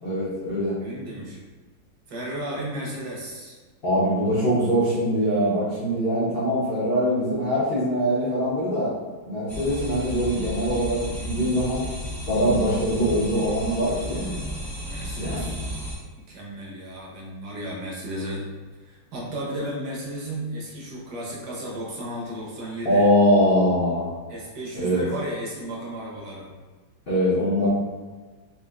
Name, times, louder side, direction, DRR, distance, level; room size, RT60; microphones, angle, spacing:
voice 1, 0.0-0.8 3.8-8.9 9.3-11.8 12.3-14.4 15.2-15.5 22.8-24.1 24.7-25.0 27.1-27.7, equal, 65° left, -10 dB, 0.5 m, -23 dB
voice 2, 0.8-1.4 2.1-3.6 14.8-15.5 16.3-18.5 18.9-23.0 24.3-26.5, right 1 dB, 65° right, -3 dB, 1.3 m, -34 dB
sound 1, 9.5-15.9, equal, 5° left, 0.3 m, -33 dB
4.0 x 2.5 x 2.4 m, 1.3 s
omnidirectional pair, 2.1 m